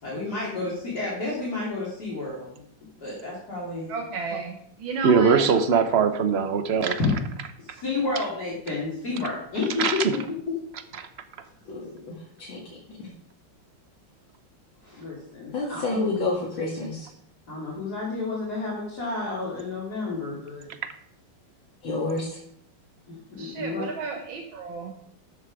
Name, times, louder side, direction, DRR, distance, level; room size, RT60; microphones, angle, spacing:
voice 1, 0.0-2.6 3.0-3.9 7.0-7.1 7.6-9.8 14.8-16.1 17.5-20.7 23.1-23.9, left 3 dB, 50° left, -6 dB, 3.5 m, -31 dB
voice 2, 3.9-5.8 23.4-24.9, right 4 dB, 75° right, 2 dB, 1.9 m, -33 dB
voice 3, 5.0-7.0 9.8-10.1 11.0-11.1, right 6 dB, 50° right, 9 dB, 0.8 m, -21 dB
voice 4, 11.7-12.6 12.9-13.0 15.5-17.1 21.8-22.4, left 2 dB, 75° left, -4 dB, 2.8 m, -29 dB
13.0 x 7.4 x 4.8 m, 0.68 s
omnidirectional pair, 2.2 m